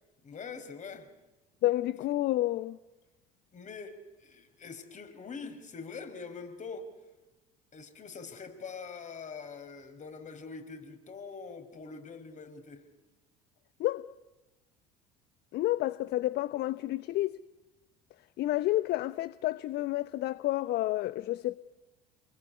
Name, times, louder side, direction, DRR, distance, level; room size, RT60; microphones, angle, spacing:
voice 1, 0.2-1.1 3.5-6.9 7.7-12.8, left 5 dB, 35° left, 5.2 m, -44 dB
voice 2, 1.6-2.8 13.8-14.1 15.5-17.3 18.4-21.6, left 15 dB, 55° left, 0.9 m, -30 dB
28.5 x 21.0 x 9.7 m
hypercardioid pair, 65°, 20 cm